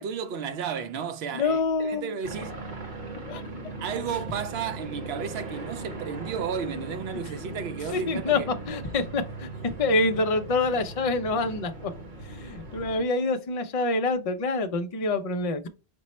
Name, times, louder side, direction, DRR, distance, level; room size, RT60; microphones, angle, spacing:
voice 1, 0.0-2.6 3.8-8.5, right 6 dB, 75° right, 0.8 m, -33 dB
voice 2, 1.3-2.2 3.3-3.4 7.9-11.9 12.3-15.7, left 3 dB, 45° left, 0.5 m, -26 dB
sound 1, 2.2-13.0, right 3 dB, 50° right, 1.0 m, -39 dB
5.2 x 2.0 x 4.2 m
omnidirectional pair, 1.1 m